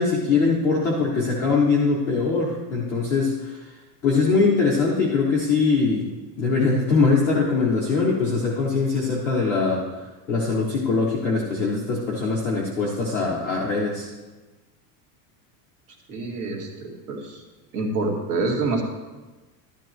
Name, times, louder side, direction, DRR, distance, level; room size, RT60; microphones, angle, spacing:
voice 1, 0.0-3.7 4.0-9.8 10.3-14.1, left 4 dB, 5° left, -10 dB, 0.3 m, -22 dB
voice 2, 16.1-17.4 17.7-18.8, right 3 dB, 65° right, 0 dB, 2.4 m, -27 dB
13.0 x 10.5 x 3.0 m, 1.2 s
supercardioid pair, 175°, 49 cm